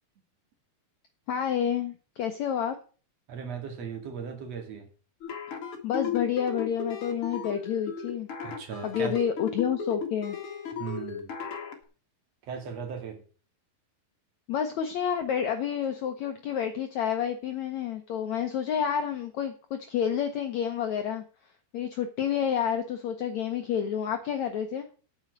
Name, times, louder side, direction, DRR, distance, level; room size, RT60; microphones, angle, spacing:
voice 1, 1.3-2.7 5.8-8.3 8.8-10.4 14.5-21.2 21.7-24.9, left 8 dB, 90° left, 6 dB, 1.5 m, -29 dB
voice 2, 3.3-4.9 8.4-9.2 10.8-11.3 12.5-13.2, right 6 dB, 45° right, 5 dB, 2.8 m, -37 dB
sound 1, 5.2-11.8, left 6 dB, 45° left, 2.1 m, -35 dB
9.1 x 7.2 x 7.9 m, 0.38 s
omnidirectional pair, 4.8 m